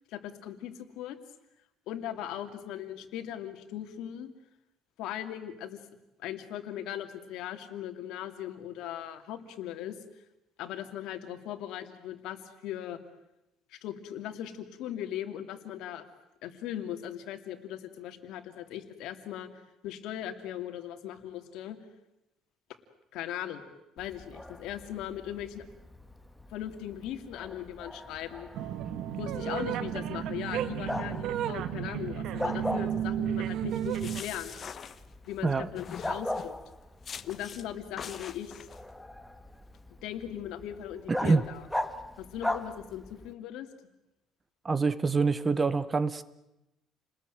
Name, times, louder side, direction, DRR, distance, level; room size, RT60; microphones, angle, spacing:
voice 1, 0.1-1.2 1.9-4.3 5.0-5.8 6.2-10.0 10.6-13.0 13.7-16.1 16.4-19.5 19.8-21.8 23.1-23.6 24.0-25.6 26.5-28.5 29.2-34.5 35.3-36.5 37.3-38.7 40.0-41.7 42.2-43.7, left 11 dB, 75° left, 7 dB, 2.8 m, -39 dB
Bark, 24.0-43.3, left 1 dB, 5° left, 1.2 m, -40 dB
sound 1, 28.5-34.2, right 10 dB, 60° right, 1.4 m, -33 dB
sound 2, 33.7-35.4 35.8-36.6 37.0-37.7 38.0-38.8, left 7 dB, 35° left, 1.1 m, -43 dB
voice 2, 41.1-41.4 44.6-46.2, right 4 dB, 20° right, 16 dB, 0.9 m, -26 dB
29.5 x 20.5 x 9.3 m, 0.91 s
cardioid pair, 155°, 0 cm